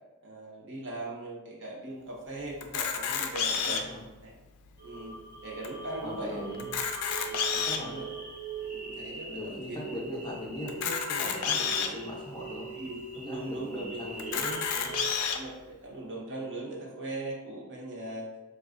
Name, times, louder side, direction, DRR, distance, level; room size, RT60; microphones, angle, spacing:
voice 1, 0.2-3.8 4.2-4.3 4.8-6.4 7.3-7.4 7.8-8.1 8.6-9.9 12.7-14.4 15.3-18.3, right 2 dB, 55° right, -4 dB, 0.8 m, -40 dB
Camera, 2.6-4.0 4.7-4.8 5.0-5.1 5.6-5.7 6.5-7.9 8.6-8.7 10.7-11.9 12.6-12.7 13.0-13.1 14.2-15.4, left 6 dB, 75° left, 0.4 m, -30 dB
voice 2, 3.7-4.0 6.0-6.7 7.5-8.0 9.2-12.7 13.2-15.0, left 1 dB, 20° left, -3 dB, 0.5 m, -40 dB
sound 1, 4.8-15.1, right 4 dB, 85° right, 1.2 m, -41 dB
4.2 x 2.3 x 2.4 m, 1.2 s
head